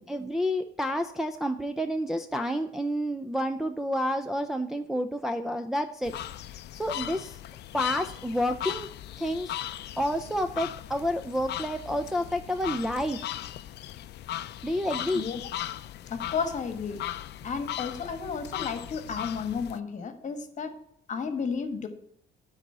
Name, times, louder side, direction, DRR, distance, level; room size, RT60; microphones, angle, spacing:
voice 1, 0.1-6.1 6.7-7.4 7.7-8.9 9.2-9.5 10.0-13.2 14.6-15.2, equal, ahead, 4 dB, 0.4 m, -29 dB
sound 1, 6.0-19.8, left 12 dB, 60° left, 0.5 m, -38 dB
voice 2, 16.1-17.0 17.4-20.7 21.1-21.9, left 5 dB, 40° left, 8 dB, 1.3 m, -32 dB
10.0 x 4.1 x 7.2 m, 0.69 s
cardioid pair, 145°, 20 cm